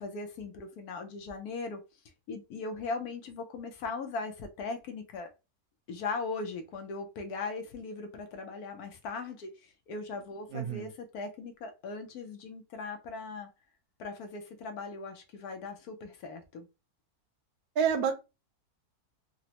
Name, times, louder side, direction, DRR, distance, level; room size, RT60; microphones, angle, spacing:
voice 1, 0.0-1.8 2.3-5.3 5.9-9.5 9.9-13.5 14.0-16.7, left 4 dB, 75° left, 1.2 m, -39 dB
voice 2, 10.5-10.9 17.8-18.2, right 7 dB, 75° right, 1.1 m, -28 dB
4.0 x 2.1 x 2.9 m
omnidirectional pair, 1.7 m